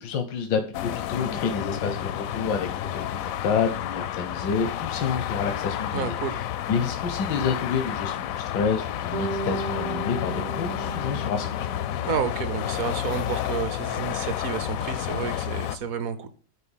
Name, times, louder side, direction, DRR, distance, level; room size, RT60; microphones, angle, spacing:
voice 1, 0.0-11.7, left 6 dB, 90° left, 7 dB, 1.6 m, -29 dB
sound 1, 0.7-15.8, left 11 dB, 70° left, 0.8 m, -30 dB
voice 2, 5.9-6.4 12.1-16.3, right 7 dB, 60° right, 12 dB, 1.1 m, -30 dB
Bass guitar, 9.1-13.2, right 5 dB, 40° right, 0.5 m, -36 dB
9.9 x 4.3 x 7.2 m, 0.41 s
omnidirectional pair, 1.9 m